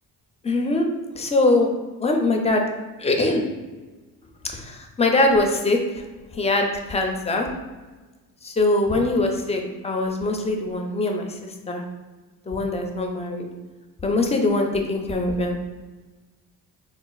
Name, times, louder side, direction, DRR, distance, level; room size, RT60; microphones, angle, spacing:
voice 1, 0.4-0.9 1.2-1.7 2.0-2.6 3.0-3.4 4.5-5.8 6.4-7.5 8.4-11.8 12.5-13.5 14.0-15.6, left 2 dB, 15° left, 2 dB, 0.4 m, -22 dB
4.0 x 2.4 x 2.3 m, 1.3 s
cardioid pair, 110°, 39 cm